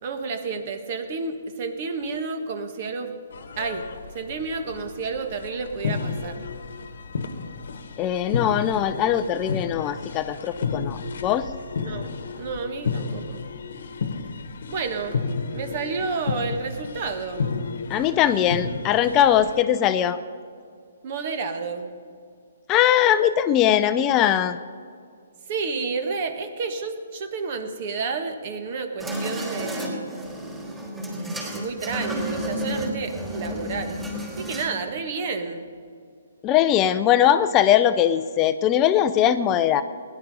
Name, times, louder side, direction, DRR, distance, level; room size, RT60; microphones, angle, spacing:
voice 1, 0.0-3.2 3.6-3.9 4.1-6.5 11.8-13.5 14.7-15.2 15.5-17.5 21.0-21.9 25.5-30.1 31.4-34.0 34.3-35.7, right 4 dB, 45° right, 7 dB, 1.5 m, -30 dB
sound 1, 3.3-19.6, left 5 dB, 65° left, 1.2 m, -32 dB
voice 2, 8.0-11.5 17.9-20.2 22.7-24.6 36.4-39.8, left 10 dB, 25° left, 12 dB, 0.5 m, -20 dB
sound 2, 29.0-34.8, equal, 15° right, 4.2 m, -31 dB
17.0 x 11.0 x 5.3 m, 2.2 s
hypercardioid pair, 140°, 0 cm